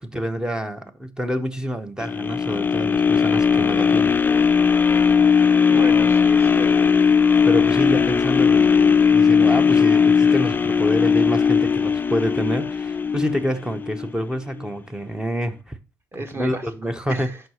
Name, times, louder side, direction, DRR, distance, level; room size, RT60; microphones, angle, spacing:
voice 1, 0.0-4.1 7.4-15.8 16.3-17.3, equal, 10° right, 0.8 m, -27 dB
sound 1, 2.0-14.1 14.6-14.7, left 6 dB, 20° left, 0.4 m, -18 dB
voice 2, 5.7-6.9 16.1-16.6 17.1-17.4, right 1 dB, 25° right, 1.6 m, -34 dB
5.5 x 4.5 x 6.3 m
supercardioid pair, 70°, 9 cm